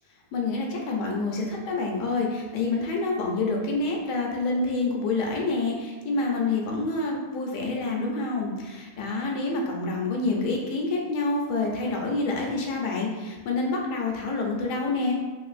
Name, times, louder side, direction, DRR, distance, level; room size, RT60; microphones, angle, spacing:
voice 1, 0.3-15.1, left 3 dB, 85° left, 0 dB, 1.2 m, -27 dB
3.7 x 2.5 x 2.4 m, 1.3 s
omnidirectional pair, 1.8 m